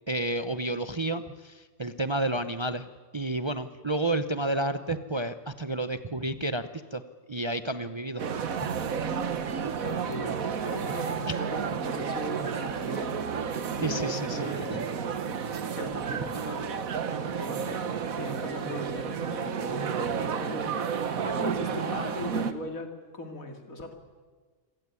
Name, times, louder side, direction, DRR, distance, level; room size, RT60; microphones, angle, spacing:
voice 1, 0.1-2.9 3.1-7.0 7.3-8.2 8.6-8.7 11.3-11.4 13.8-14.8, right 2 dB, 25° right, 10 dB, 0.7 m, -31 dB
sound 1, 8.2-22.5, right 6 dB, 80° right, 1.6 m, -31 dB
voice 2, 9.8-13.2 13.8-14.9 15.7-20.7 21.2-23.9, left 1 dB, 80° left, 5 dB, 3.1 m, -38 dB
26.5 x 17.0 x 9.7 m, 1.4 s
omnidirectional pair, 1.4 m